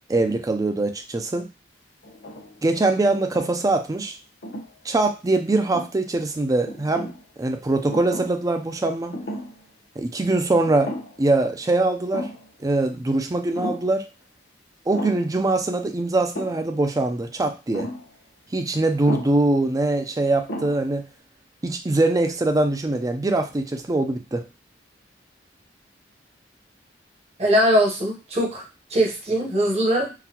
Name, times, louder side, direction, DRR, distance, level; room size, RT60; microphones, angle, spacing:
voice 1, 0.1-1.5 2.6-4.2 4.8-7.1 7.4-9.2 10.0-10.9 11.2-12.3 12.6-14.1 14.9-17.9 18.5-21.1 21.6-24.4, right 2 dB, 20° right, 6 dB, 0.4 m, -22 dB
sound 1, 2.0-2.6 3.1-3.8 4.4-4.7 5.5-6.2 6.7-7.2 7.9-8.4 8.7-8.8 9.1-9.6 10.0-10.1 10.6-11.3 11.6-11.7 12.1-12.5 13.5-13.9 14.9-15.4 16.3-16.7 17.7-18.1 19.1-19.4 20.1-20.2 20.5-21.0, equal, 65° left, 0.8 m, -34 dB
voice 2, 27.4-28.6 28.9-30.1, equal, 35° right, 0 dB, 0.9 m, -21 dB
3.8 x 2.2 x 2.8 m, 0.29 s
head